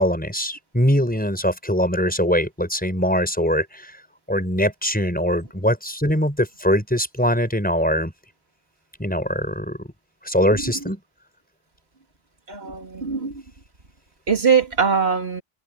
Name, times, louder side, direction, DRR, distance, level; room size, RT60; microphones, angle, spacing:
voice 1, 0.0-3.9 4.3-8.1 9.0-9.8 10.2-11.0, equal, 10° left, 6.1 m, -22 dB
voice 2, 12.5-13.3 14.3-15.4, right 6 dB, 70° right, 2.9 m, -21 dB
omnidirectional pair, 1.1 m